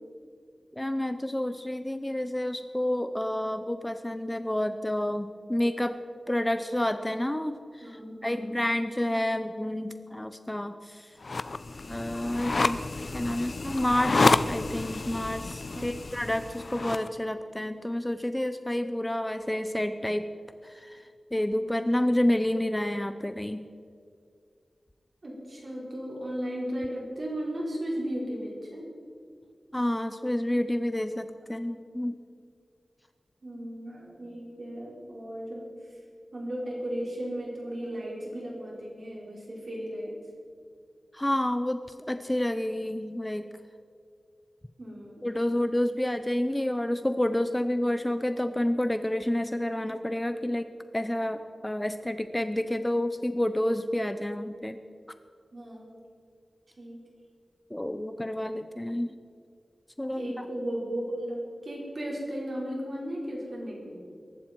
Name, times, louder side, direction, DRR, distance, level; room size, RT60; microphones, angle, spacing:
voice 1, 0.7-6.0 6.3-11.1 11.9-12.8 13.1-20.3 20.6-21.0 21.3-23.6 29.7-32.2 41.1-41.8 42.1-43.5 45.2-54.8 57.7-59.2 60.0-60.5, left 1 dB, 15° left, 10 dB, 0.7 m, -29 dB
voice 2, 7.8-8.6 15.7-15.9 25.2-28.9 33.4-35.7 36.3-40.1 44.8-45.3 55.5-56.0 56.8-57.0 60.0-64.1, equal, 55° right, -3 dB, 5.1 m, -35 dB
sound 1, 11.2-17.1, left 3 dB, 55° left, 0.6 m, -29 dB
22.5 x 12.0 x 4.6 m, 2.2 s
wide cardioid pair, 90°, 0 cm